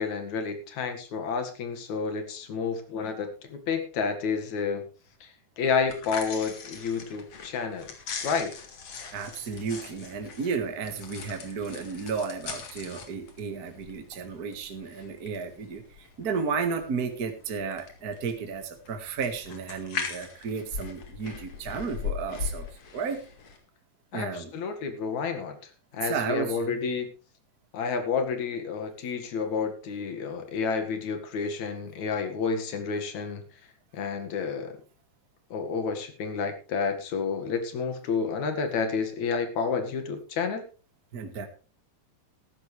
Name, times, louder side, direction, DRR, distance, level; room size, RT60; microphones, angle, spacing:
voice 1, 0.0-4.8 5.2-7.9 8.2-8.5 24.1-25.6 25.9-27.1 27.7-33.4 33.9-34.7 35.5-40.6, left 5 dB, 75° left, 6 dB, 3.3 m, -30 dB
sound 1, 5.7-23.6, left 6 dB, 55° left, 3.0 m, -40 dB
voice 2, 9.1-22.7 22.9-23.2 24.1-24.5 26.0-26.8 41.1-41.5, right 5 dB, 35° right, 5 dB, 1.9 m, -33 dB
14.5 x 13.0 x 3.3 m, 0.35 s
omnidirectional pair, 3.3 m